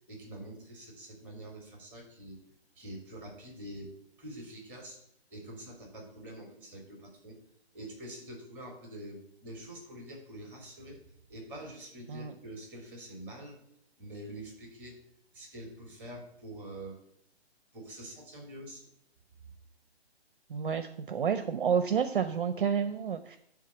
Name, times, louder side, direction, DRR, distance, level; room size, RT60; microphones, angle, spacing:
voice 1, 0.1-2.4 2.7-3.9 4.2-5.0 5.3-7.4 7.7-11.0 11.3-13.6 14.0-15.0 15.3-16.9 17.7-18.9, right 1 dB, 5° right, 0 dB, 2.9 m, -45 dB
voice 2, 20.5-23.4, right 7 dB, 50° right, 9 dB, 0.8 m, -30 dB
11.0 x 3.7 x 7.1 m, 0.70 s
hypercardioid pair, 165°, 32 cm